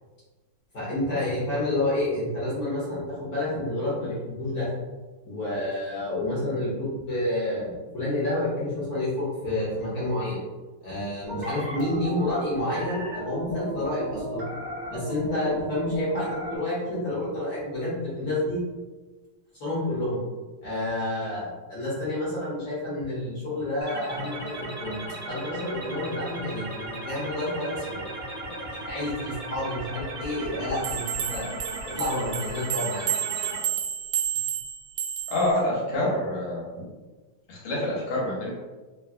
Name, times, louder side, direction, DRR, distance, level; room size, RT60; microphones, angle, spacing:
voice 1, 0.7-4.7 5.2-10.4 10.8-14.4 14.9-18.6 19.5-20.2 20.6-25.0 25.3-28.1 28.4-31.0 31.3-31.5 31.8-33.1, left 1 dB, 55° left, -9 dB, 1.2 m, -29 dB
sound 1, 11.2-16.6, right 1 dB, 35° right, 1.2 m, -34 dB
sound 2, 23.8-33.6, right 1 dB, 50° right, 0.7 m, -37 dB
sound 3, 30.8-35.5, right 10 dB, 80° right, 1.4 m, -30 dB
voice 2, 35.3-36.6 37.5-38.5, left 1 dB, 85° left, -5 dB, 1.7 m, -26 dB
3.6 x 2.2 x 2.4 m, 1.3 s
omnidirectional pair, 2.4 m